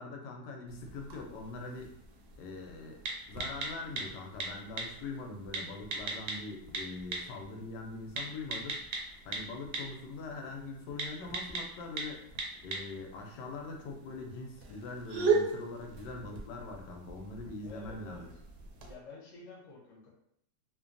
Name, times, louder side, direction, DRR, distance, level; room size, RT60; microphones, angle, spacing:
voice 1, 0.0-1.9 2.4-8.8 9.2-12.3 12.6-18.3, left 3 dB, 75° left, 2 dB, 1.2 m, -42 dB
sound 1, 0.7-18.9, right 4 dB, 70° right, 1.1 m, -39 dB
voice 2, 17.6-18.2 18.9-20.1, left 4 dB, 55° left, -4 dB, 1.0 m, -49 dB
3.0 x 2.2 x 2.5 m, 0.73 s
omnidirectional pair, 1.9 m